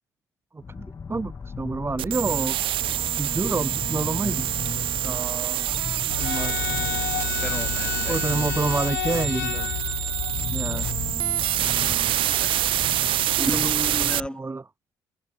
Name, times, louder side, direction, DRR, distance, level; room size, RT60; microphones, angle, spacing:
voice 1, 0.5-2.6 3.2-5.8 6.2-6.6 8.1-9.7 10.5-10.9 13.4-14.6, right 3 dB, 25° right, 4.0 m, -29 dB
sound 1, 0.6-14.3, left 5 dB, 35° left, 1.7 m, -36 dB
sound 2, 2.0-14.2, right 13 dB, 65° right, 1.8 m, -26 dB
sound 3, 6.1-11.1, left 24 dB, 85° left, 1.4 m, -31 dB
voice 2, 7.4-8.3 11.9-12.5 13.4-14.5, left 1 dB, 10° left, 4.9 m, -34 dB
hypercardioid pair, 55°, 9 cm